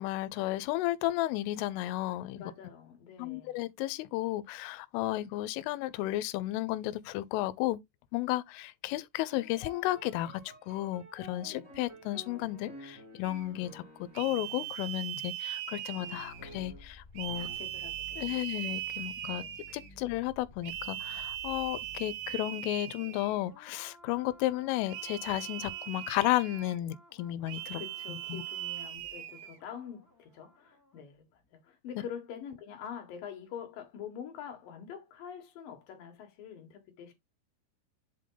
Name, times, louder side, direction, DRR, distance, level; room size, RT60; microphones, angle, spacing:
voice 1, 0.0-2.4 3.2-7.8 8.1-10.4 10.7-13.8 14.2-17.5 18.2-19.4 19.7-27.8 28.1-28.4, left 16 dB, 90° left, 3.2 m, -33 dB
voice 2, 2.3-3.5 11.5-11.6 17.4-18.5 19.3-19.6 27.7-37.1, left 8 dB, 60° left, 2.6 m, -45 dB
sound 1, 9.3-14.8 15.9-16.9 17.3-17.6, left 1 dB, 15° right, 1.0 m, -50 dB
sound 2, 13.2-13.5 14.1-16.6 17.2-19.9 20.6-23.4 24.9-26.8 27.5-29.6, right 13 dB, 80° right, 2.5 m, -40 dB
sound 3, 16.1-31.0 31.3-31.4, left 2 dB, 10° left, 1.3 m, -56 dB
8.0 x 3.6 x 3.8 m
omnidirectional pair, 5.6 m